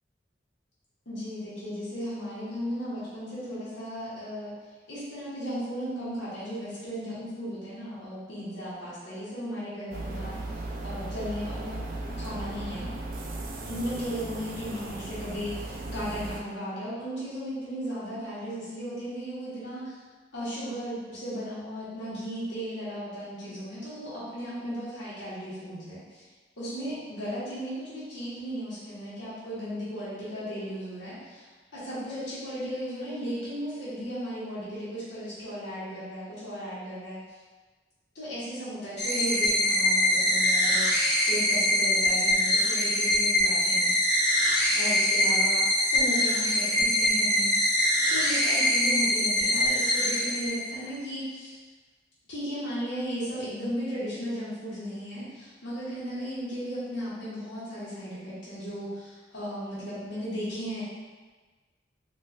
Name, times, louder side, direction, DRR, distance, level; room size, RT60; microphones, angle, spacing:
voice 1, 1.0-4.5 4.9-10.4 10.8-11.8 12.2-12.9 13.6-20.0 20.3-26.3 26.6-37.4 38.1-43.9 44.7-47.6 48.1-51.5 52.3-60.8, equal, 90° left, -11 dB, 1.3 m, -35 dB
sound 1, 9.9-16.4, right 2 dB, 45° right, 0.3 m, -36 dB
sound 2, 39.0-50.9, left 1 dB, 20° left, 0.7 m, -24 dB
3.8 x 2.5 x 2.4 m, 1.4 s
head